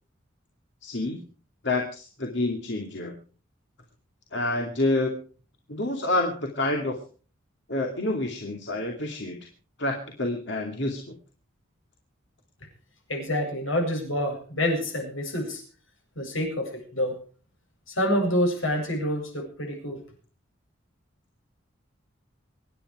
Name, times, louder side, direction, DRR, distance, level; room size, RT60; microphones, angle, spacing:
voice 1, 0.8-1.2 1.6-3.1 4.3-5.2 5.7-6.9 7.7-9.4 9.8-11.1, left 2 dB, 60° left, 2 dB, 2.5 m, -28 dB
voice 2, 13.1-15.6 16.2-17.2 17.9-20.0, left 1 dB, 80° left, 2 dB, 8.0 m, -27 dB
25.0 x 10.5 x 4.9 m, 0.40 s
head